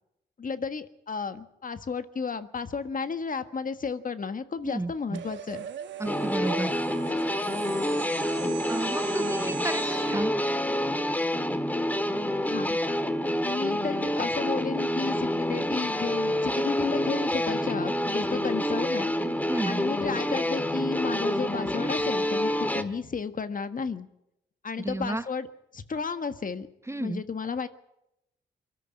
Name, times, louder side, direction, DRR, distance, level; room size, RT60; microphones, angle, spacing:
voice 1, 0.4-5.7 12.4-12.8 13.4-19.1 19.6-24.1 24.6-25.5 25.7-26.7 27.0-27.7, left 5 dB, 45° left, 10 dB, 1.5 m, -33 dB
voice 2, 4.6-5.2 6.0-6.7 8.7-10.3 19.5-19.8 24.8-25.3 26.9-27.2, right 2 dB, 15° right, 13 dB, 0.8 m, -32 dB
sound 1, 5.1-10.2, right 8 dB, 80° right, 1.1 m, -39 dB
sound 2, 6.1-22.8, left 1 dB, 10° left, 1.7 m, -28 dB
23.5 x 13.0 x 9.6 m, 0.87 s
cardioid pair, 60°, 19 cm